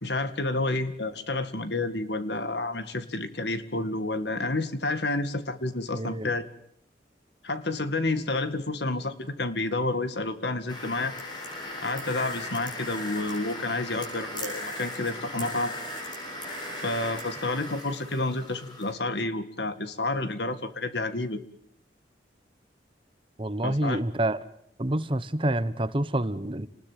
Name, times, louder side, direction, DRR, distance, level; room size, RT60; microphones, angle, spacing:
voice 1, 0.0-6.4 7.4-11.1 11.8-15.7 16.8-21.4 23.6-24.0, left 2 dB, 65° left, 11 dB, 2.1 m, -30 dB
voice 2, 5.9-6.3 23.4-24.4 24.8-26.7, right 1 dB, 30° right, 14 dB, 1.0 m, -27 dB
sound 1, 10.7-18.9, left 1 dB, 25° left, 7.7 m, -37 dB
29.0 x 20.5 x 7.6 m, 0.70 s
head